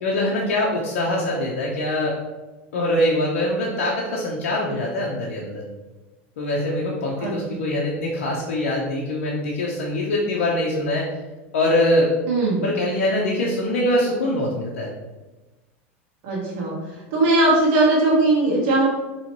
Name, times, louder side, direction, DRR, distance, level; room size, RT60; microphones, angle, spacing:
voice 1, 0.0-2.2 2.7-5.6 6.4-11.0 11.5-12.1 12.6-14.9, left 1 dB, 85° left, -3 dB, 0.7 m, -23 dB
voice 2, 12.3-12.6 16.2-16.8 17.1-18.9, right 2 dB, 65° right, -4 dB, 1.2 m, -19 dB
4.3 x 3.1 x 3.0 m, 1.1 s
supercardioid pair, 115°, 7 cm